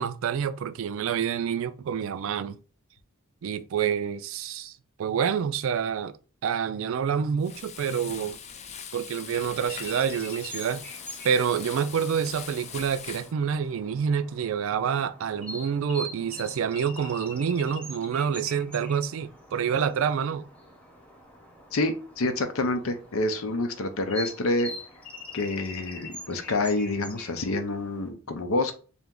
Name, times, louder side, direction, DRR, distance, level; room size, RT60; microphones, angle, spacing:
voice 1, 0.0-2.6 3.4-6.2 6.4-8.4 8.9-10.8 11.2-20.4, right 7 dB, 70° right, 0.4 m, -27 dB
Frying (food), 7.4-13.3, left 7 dB, 35° left, 0.4 m, -41 dB
sound 1, 9.7-28.1, left 1 dB, 5° left, 0.9 m, -44 dB
voice 2, 21.7-24.7 25.3-28.8, left 2 dB, 85° left, 0.7 m, -27 dB
3.4 x 2.8 x 3.6 m
head